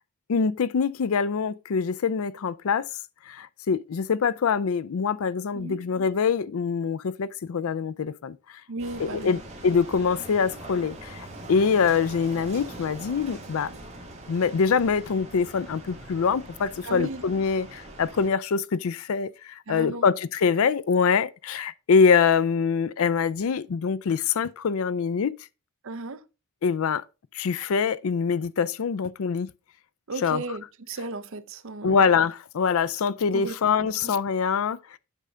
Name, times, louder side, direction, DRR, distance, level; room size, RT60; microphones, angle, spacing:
voice 1, 0.3-2.9 3.3-8.6 9.0-13.7 14.3-25.3 26.6-27.0 27.3-29.5 30.2-30.4 31.8-35.0, left 5 dB, 70° left, 0.4 m, -24 dB
voice 2, 8.7-9.4 16.8-17.2 19.7-20.1 25.8-26.2 30.1-32.0 33.3-33.6 34.0-34.1, right 2 dB, 60° right, 0.7 m, -35 dB
sound 1, 8.8-18.3, right 2 dB, 30° right, 2.0 m, -42 dB
8.3 x 5.6 x 3.7 m
head